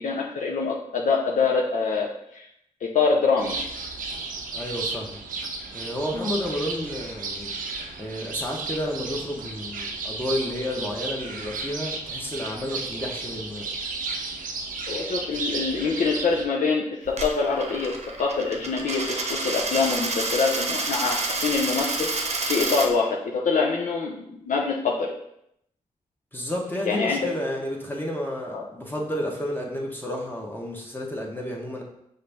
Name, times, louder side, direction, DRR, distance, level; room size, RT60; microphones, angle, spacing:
voice 1, 0.0-2.5 2.8-3.6 6.1-6.2 14.9-25.1 26.9-27.2 28.5-28.6, left 4 dB, 70° left, -2 dB, 0.6 m, -25 dB
sound 1, 3.4-16.5, right 3 dB, 80° right, 0.6 m, -33 dB
voice 2, 4.5-5.2 5.7-7.5 8.0-13.7 26.3-31.8, left 1 dB, 15° left, -1 dB, 1.1 m, -31 dB
Coin (dropping), 17.1-22.9, right 3 dB, 50° right, 0.8 m, -29 dB
5.4 x 2.6 x 3.4 m, 0.77 s
cardioid pair, 55°, 14 cm